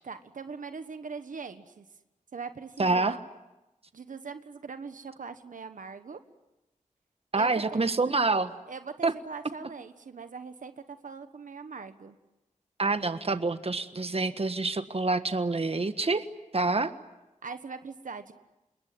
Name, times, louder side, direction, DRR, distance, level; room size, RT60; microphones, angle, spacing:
voice 1, 0.0-1.8 2.3-3.2 3.9-6.2 7.4-7.6 8.7-12.2 17.4-18.3, right 5 dB, 85° right, 9 dB, 1.4 m, -41 dB
voice 2, 2.8-3.1 7.3-8.5 9.0-9.1 12.8-16.3 16.5-16.9, right 3 dB, 50° right, 10 dB, 1.5 m, -27 dB
27.5 x 21.5 x 9.5 m, 0.98 s
cardioid pair, 45°, 13 cm